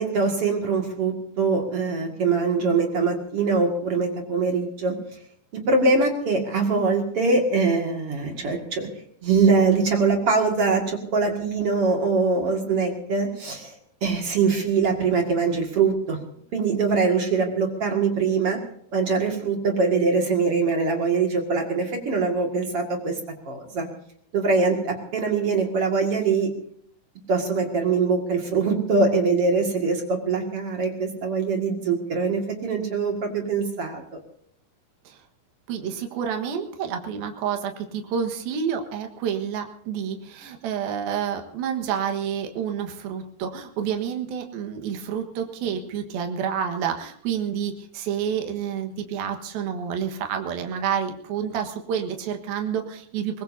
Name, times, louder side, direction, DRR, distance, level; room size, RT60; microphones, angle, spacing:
voice 1, 0.0-4.9 5.7-8.9 9.2-13.8 14.0-16.2 16.5-18.6 18.9-23.2 23.5-23.9 24.3-26.5 27.3-34.2, right 4 dB, 45° right, 2 dB, 2.6 m, -23 dB
voice 2, 35.7-53.4, right 8 dB, 75° right, 5 dB, 3.3 m, -29 dB
23.5 x 20.0 x 2.7 m, 0.65 s
omnidirectional pair, 4.3 m